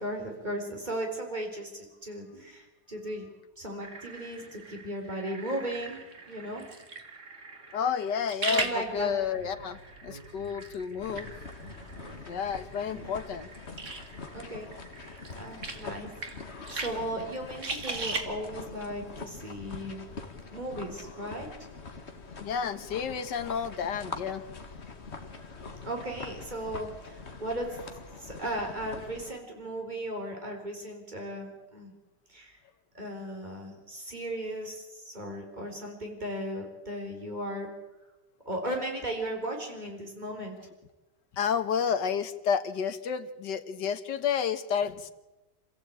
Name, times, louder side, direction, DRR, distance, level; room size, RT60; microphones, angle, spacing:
voice 1, 0.0-3.3 3.6-6.0 6.3-6.7 8.4-9.1 12.8-13.1 14.3-14.7 14.9-16.1 16.7-20.1 20.5-21.5 25.6-27.7 28.2-31.9 32.3-32.6 32.9-37.7 38.5-40.6, right 1 dB, 25° right, 2 dB, 4.6 m, -36 dB
sound 1, 3.8-18.2, right 3 dB, 45° right, 2.6 m, -40 dB
voice 2, 7.7-11.3 12.3-13.5 22.4-24.4 41.4-45.1, left 7 dB, 80° left, 10 dB, 1.9 m, -30 dB
Speech, 8.6-13.5, right 1 dB, 70° right, 7.8 m, -52 dB
sound 2, 11.0-29.3, left 4 dB, 40° left, 1.9 m, -44 dB
28.0 x 15.0 x 8.8 m, 1.1 s
omnidirectional pair, 1.8 m